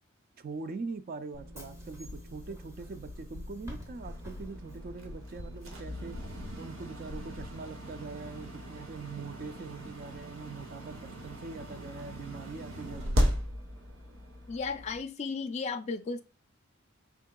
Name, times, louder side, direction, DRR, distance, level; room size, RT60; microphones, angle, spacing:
voice 1, 0.4-6.2 6.6-13.2, right 4 dB, 45° right, 0.4 m, -42 dB
Bus / Engine, 1.3-6.5, equal, 15° right, 0.8 m, -47 dB
sound 1, 2.1-2.6 3.1-7.7, left 2 dB, 90° left, 0.5 m, -46 dB
sound 2, 4.0-15.0, equal, 75° right, 1.0 m, -37 dB
voice 2, 14.5-16.2, left 4 dB, 35° left, 0.4 m, -34 dB
4.6 x 3.6 x 2.2 m
head